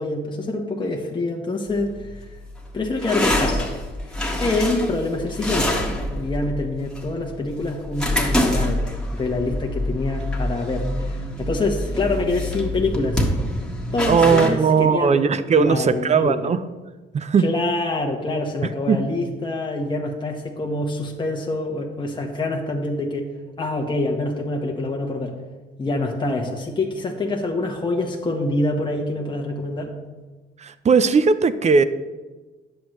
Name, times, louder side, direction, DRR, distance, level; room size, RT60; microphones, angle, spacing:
voice 1, 0.0-2.2 2.7-3.7 4.4-5.8 6.1-13.3 13.9-15.2 15.5-16.5 17.4-23.3 23.6-25.4 25.8-29.9, left 2 dB, 25° left, 0 dB, 1.0 m, -26 dB
sound 1, 1.7-14.5, left 1 dB, 5° left, 1.6 m, -26 dB
voice 2, 14.1-16.6 17.1-17.5 18.9-19.0 30.6-31.8, right 5 dB, 35° right, 13 dB, 0.5 m, -18 dB
10.0 x 7.7 x 3.1 m, 1.2 s
cardioid pair, 90°, 20 cm